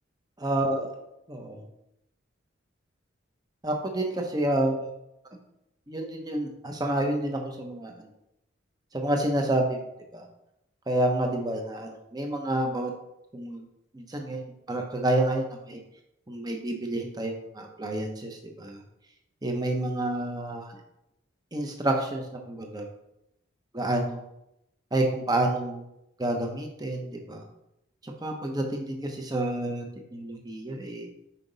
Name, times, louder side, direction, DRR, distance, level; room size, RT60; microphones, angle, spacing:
voice 1, 0.4-0.9 1.3-1.6 3.6-4.8 5.9-8.1 8.9-9.8 10.1-10.3 10.9-12.9 13.3-13.7 13.9-15.8 16.3-18.8 19.4-20.8 21.5-22.9 23.7-24.2 24.9-25.8 26.2-27.4 28.0-29.8 30.1-31.1, right 1 dB, 20° right, 2 dB, 0.8 m, -29 dB
5.9 x 4.9 x 4.0 m, 0.84 s
head